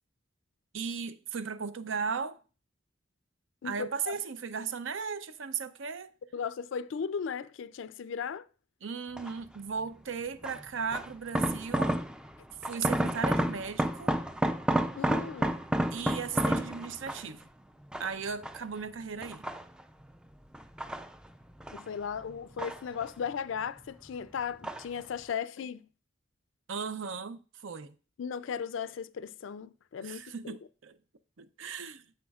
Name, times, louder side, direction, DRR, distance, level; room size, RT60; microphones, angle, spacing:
voice 1, 0.7-2.4 3.6-6.1 8.8-12.0 12.6-14.1 15.9-17.5 18.0-19.5 26.7-27.9 30.0-31.0 31.4-32.0, right 6 dB, 75° right, 0.6 m, -36 dB
voice 2, 3.6-4.2 6.3-8.5 15.0-15.6 21.7-25.9 28.2-30.6, left 7 dB, 70° left, 0.4 m, -36 dB
sound 1, 9.2-9.6 10.4-12.3 12.6-17.4 17.9-18.8 19.2-20.0 20.5-21.9 22.2-23.3 23.6-24.2 24.6-25.0 25.3-25.4, right 1 dB, 5° right, 0.3 m, -31 dB
10.5 x 7.8 x 2.4 m
head